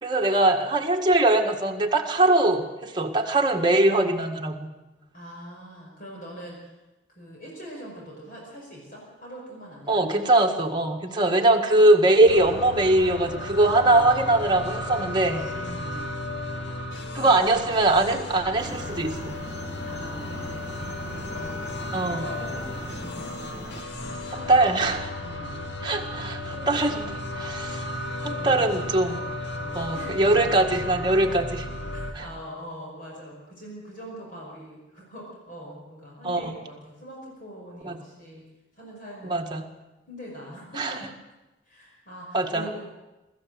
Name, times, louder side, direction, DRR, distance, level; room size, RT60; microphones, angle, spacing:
voice 1, 0.0-4.7 9.9-15.4 17.1-19.3 21.9-22.3 24.3-25.1 25.8-27.8 28.2-29.2 29.7-31.7 32.1-32.2 36.2-36.6 37.8-38.0 39.2-39.7 40.8-40.9 42.3-42.7, right 2 dB, 20° right, 1 dB, 1.8 m, -22 dB
voice 2, 5.1-6.7 7.1-10.0 15.5-16.2 19.8-23.1 25.2-25.6 28.4-28.9 29.9-30.3 31.9-38.4 38.7-39.6 40.1-41.0 41.6-42.9, equal, 45° left, -3 dB, 5.2 m, -42 dB
sound 1, 12.3-32.1, left 1 dB, 65° left, 1.9 m, -34 dB
sound 2, 18.6-23.8, equal, 15° left, 1.5 m, -41 dB
23.5 x 14.0 x 7.7 m, 1.1 s
head